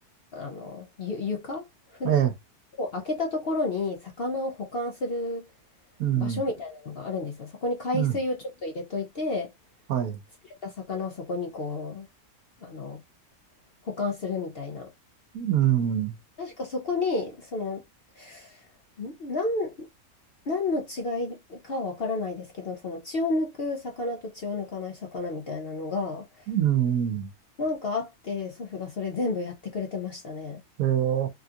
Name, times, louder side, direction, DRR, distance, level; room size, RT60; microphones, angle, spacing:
voice 1, 0.3-1.6 1.9-2.1 2.7-5.5 6.1-9.5 10.6-12.1 12.6-13.0 13.8-14.9 16.4-17.8 18.2-18.7 19.0-19.9 20.5-26.5 27.6-30.6, left 3 dB, 55° left, 0.7 m, -31 dB
voice 2, 6.0-6.4 7.9-8.2 9.9-10.2 15.3-16.1 26.5-27.3 30.8-31.3, right 10 dB, 75° right, 1.2 m, -24 dB
3.5 x 2.4 x 2.7 m
omnidirectional pair, 1.6 m